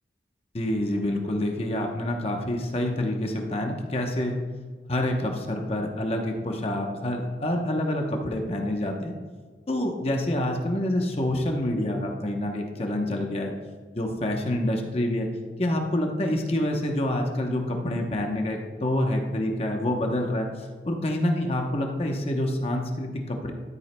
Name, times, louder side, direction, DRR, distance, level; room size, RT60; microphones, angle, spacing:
voice 1, 0.5-4.4 4.9-9.1 9.7-13.5 13.9-15.3 15.6-20.5 20.8-23.5, left 1 dB, 35° left, 2 dB, 0.8 m, -27 dB
12.5 x 9.1 x 2.2 m, 1.5 s
head